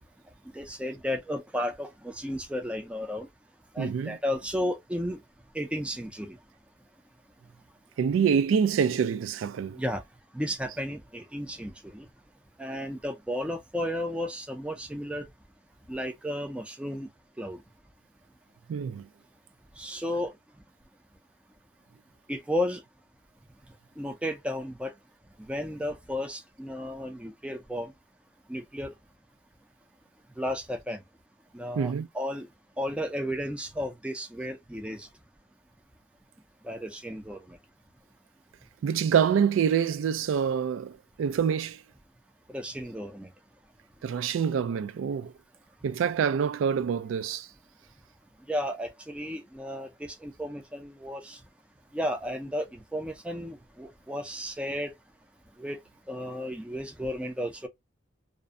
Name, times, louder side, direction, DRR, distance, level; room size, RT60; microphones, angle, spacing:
voice 1, 0.5-3.3 3.7-5.2 5.5-6.4 9.7-10.0 10.3-12.1 12.6-15.2 15.9-17.1 17.4-17.6 19.8-20.3 22.3-22.8 24.0-24.9 25.5-27.9 28.5-28.9 30.4-31.0 31.5-32.5 32.8-35.1 36.6-37.6 42.5-43.3 48.5-51.4 51.9-54.9 55.6-55.8 56.1-57.7, equal, 5° right, 0.4 m, -33 dB
voice 2, 3.8-4.2 8.0-9.8 18.7-19.1 31.8-32.1 38.8-41.8 44.0-45.3 45.8-47.5, right 7 dB, 80° right, 0.3 m, -26 dB
2.5 x 2.0 x 2.4 m
head